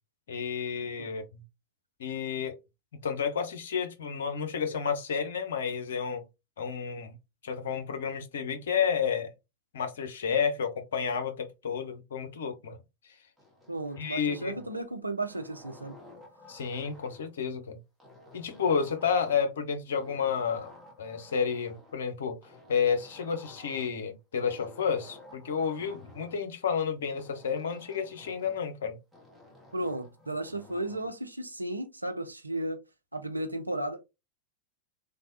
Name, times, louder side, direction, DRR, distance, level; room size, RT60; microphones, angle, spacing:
voice 1, 0.3-1.4 2.0-2.6 3.0-6.2 6.6-7.1 7.4-9.3 9.7-12.8 14.0-14.5 16.5-17.8 18.3-20.7 21.0-22.4 22.7-29.0, left 6 dB, 60° left, 0.6 m, -31 dB
sound 1, 13.4-14.9 15.3-17.4 18.0-19.6 19.9-21.9 22.4-24.0 24.4-26.4 27.2-28.7 29.1-31.2, left 2 dB, ahead, 1.1 m, -53 dB
voice 2, 13.7-15.9 29.7-32.8 33.1-34.0, right 1 dB, 85° right, 0.5 m, -34 dB
3.3 x 2.2 x 2.7 m
figure-of-eight pair, 90°, 0 cm